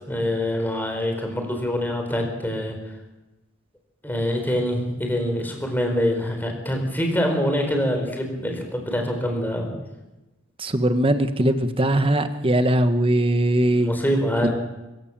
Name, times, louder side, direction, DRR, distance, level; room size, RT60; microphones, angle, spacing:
voice 1, 0.1-2.8 4.0-9.7 13.8-14.5, equal, 10° left, 3 dB, 4.3 m, -25 dB
voice 2, 10.6-13.9 14.4-14.5, right 1 dB, 25° right, 9 dB, 1.4 m, -20 dB
24.5 x 16.0 x 7.6 m, 1.0 s
head